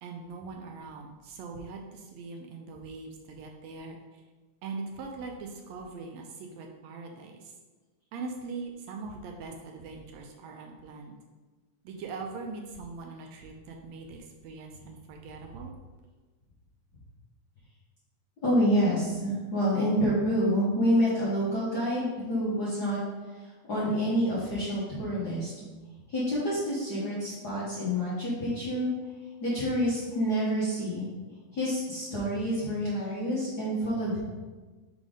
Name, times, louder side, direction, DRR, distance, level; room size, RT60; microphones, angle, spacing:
voice 1, 0.0-4.2 4.6-7.5 8.1-11.2 11.8-15.7, right 4 dB, 80° right, 2 dB, 1.7 m, -41 dB
voice 2, 18.4-23.0 23.4-25.5 26.1-28.9 29.4-31.1 31.5-34.2, equal, 55° left, -8 dB, 1.2 m, -28 dB
4.9 x 3.8 x 5.0 m, 1.3 s
omnidirectional pair, 3.3 m